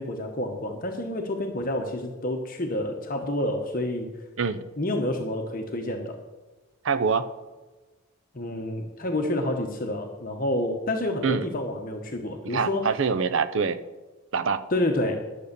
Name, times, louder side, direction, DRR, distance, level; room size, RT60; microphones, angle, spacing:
voice 1, 0.0-4.1 4.8-6.1 8.3-12.9 14.7-15.2, left 1 dB, 40° left, 2 dB, 1.0 m, -28 dB
voice 2, 6.8-7.3 11.2-11.4 12.4-13.8 14.3-14.6, right 5 dB, 60° right, 11 dB, 0.6 m, -25 dB
11.5 x 6.8 x 6.8 m, 1.2 s
head